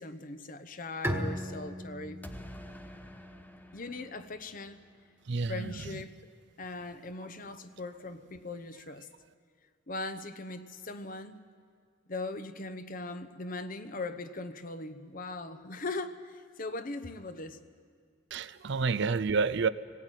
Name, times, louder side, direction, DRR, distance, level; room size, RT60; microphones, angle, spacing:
voice 1, 0.0-2.2 3.7-4.8 5.5-6.3 6.6-9.1 9.9-11.4 12.1-17.6, left 2 dB, 45° left, 11 dB, 0.9 m, -40 dB
Bowed string instrument, 1.0-4.6, equal, 10° right, 1.5 m, -38 dB
sound 1, 2.2-5.1, equal, 10° left, 0.8 m, -50 dB
voice 2, 5.3-6.0 18.3-19.7, right 4 dB, 60° right, 16 dB, 0.5 m, -29 dB
20.0 x 17.0 x 9.2 m, 2.1 s
head